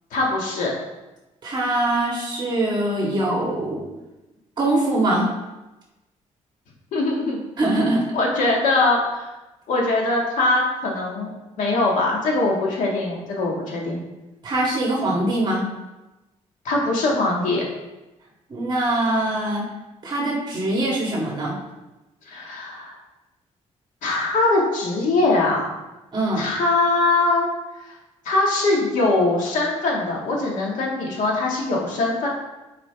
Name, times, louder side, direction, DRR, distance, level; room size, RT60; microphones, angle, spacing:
voice 1, 0.1-0.7 6.9-7.4 8.1-9.3 9.7-14.0 16.6-17.6 22.3-22.9 24.0-25.7 26.4-27.5 27.8-28.0 28.2-32.3, left 2 dB, 85° left, -2 dB, 2.0 m, -22 dB
voice 2, 1.4-3.8 4.6-5.3 7.6-8.0 14.4-15.6 18.5-19.7 20.0-21.6 26.1-26.5, right 1 dB, 35° right, -4 dB, 2.0 m, -22 dB
10.0 x 5.0 x 3.5 m, 1.0 s
cardioid pair, 145°, 13 cm